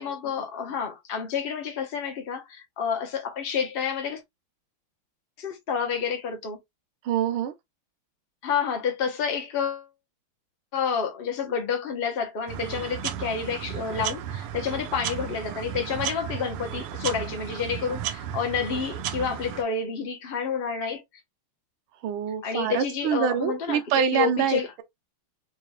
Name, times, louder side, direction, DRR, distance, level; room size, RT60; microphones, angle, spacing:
voice 1, 0.0-4.2 5.4-6.6 8.4-9.9 10.7-21.0 22.4-23.8 24.1-24.7, left 6 dB, 65° left, 0.5 m, -29 dB
voice 2, 7.0-7.5 22.0-24.8, right 8 dB, 70° right, 1.4 m, -25 dB
sound 1, 12.5-19.6, right 10 dB, 90° right, 1.6 m, -34 dB
4.6 x 2.3 x 3.1 m
omnidirectional pair, 2.4 m